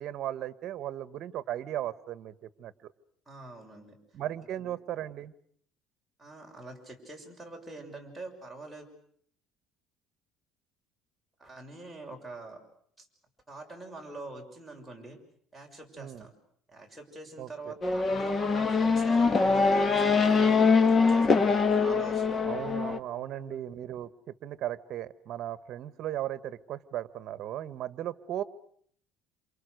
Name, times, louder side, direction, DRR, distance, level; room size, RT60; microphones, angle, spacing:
voice 1, 0.0-2.9 4.1-5.3 16.0-16.3 17.4-17.7 22.4-28.4, right 12 dB, 50° right, 14 dB, 1.4 m, -36 dB
voice 2, 3.3-4.0 4.6-4.7 6.2-8.9 11.4-12.6 13.0-13.1 13.5-15.2 15.5-16.3 16.7-22.4 23.1-23.6, right 2 dB, ahead, -1 dB, 6.3 m, -45 dB
Race car auto racing / Accelerating revving vroom, 17.8-23.0, left 4 dB, 25° left, 1.4 m, -23 dB
28.0 x 28.0 x 6.6 m, 0.63 s
cardioid pair, 140°, 0 cm